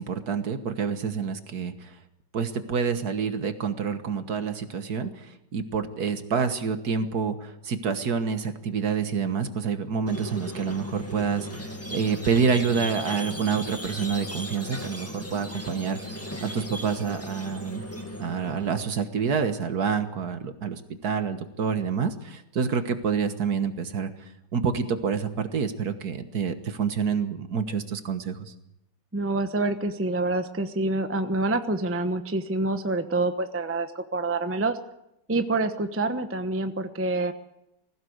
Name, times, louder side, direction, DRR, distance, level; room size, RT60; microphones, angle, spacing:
voice 1, 0.0-1.9 2.3-17.8 18.2-28.5, right 6 dB, 60° right, 9 dB, 1.8 m, -28 dB
Squeak, 10.1-18.8, left 1 dB, 10° left, 1.9 m, -37 dB
voice 2, 29.1-34.8 35.3-37.3, right 2 dB, 10° right, 8 dB, 0.8 m, -27 dB
20.5 x 16.0 x 8.0 m, 0.83 s
omnidirectional pair, 2.0 m